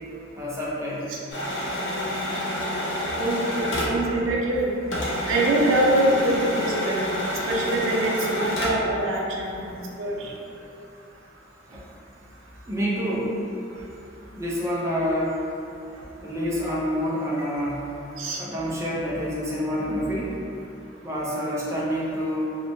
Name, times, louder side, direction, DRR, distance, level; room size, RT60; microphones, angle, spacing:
voice 1, 0.4-1.1 9.6-10.3 11.7-11.9 12.7-13.4 14.3-15.4 15.9-17.8 18.4-20.4 21.0-22.6, equal, 15° right, -7 dB, 0.4 m, -28 dB
sound 1, 1.3-4.6 4.9-8.9, left 1 dB, 75° left, 0.7 m, -28 dB
voice 2, 3.1-4.7 5.3-7.1 7.5-10.3 18.2-18.4, right 1 dB, 75° right, -3 dB, 0.4 m, -24 dB
2.9 x 2.1 x 2.6 m, 2.7 s
head